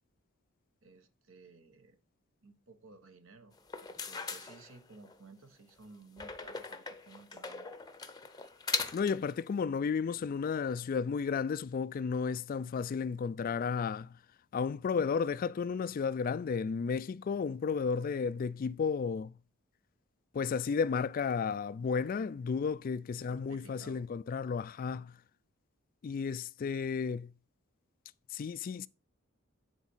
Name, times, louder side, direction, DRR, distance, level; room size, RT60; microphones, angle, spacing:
voice 1, 0.8-2.0 2.4-7.7 23.1-24.1, right 3 dB, 70° right, 1.3 m, -56 dB
sound 1, 3.6-5.2 6.2-9.3, left 4 dB, 20° left, 0.7 m, -40 dB
voice 2, 8.9-14.1 14.5-19.3 20.3-25.1 26.0-27.3 28.3-28.9, left 5 dB, 40° left, 0.3 m, -33 dB
9.6 x 4.2 x 5.5 m
head